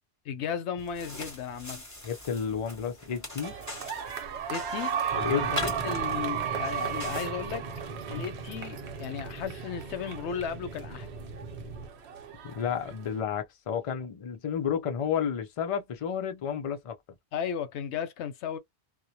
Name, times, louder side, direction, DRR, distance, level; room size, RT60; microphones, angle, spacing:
voice 1, 0.2-1.8 4.5-5.0 5.3-7.7 8.1-11.1 17.3-18.6, left 7 dB, 90° left, 0.9 m, -35 dB
sound 1, 0.8-7.3, left 1 dB, 15° left, 0.8 m, -41 dB
voice 2, 2.0-3.5 5.1-5.5 8.2-8.3 12.4-16.9, left 7 dB, 45° left, 0.5 m, -31 dB
sound 2, 3.4-13.2, right 8 dB, 80° right, 0.9 m, -35 dB
sound 3, 5.1-11.9, right 3 dB, 45° right, 0.7 m, -41 dB
2.2 x 2.1 x 2.6 m
omnidirectional pair, 1.1 m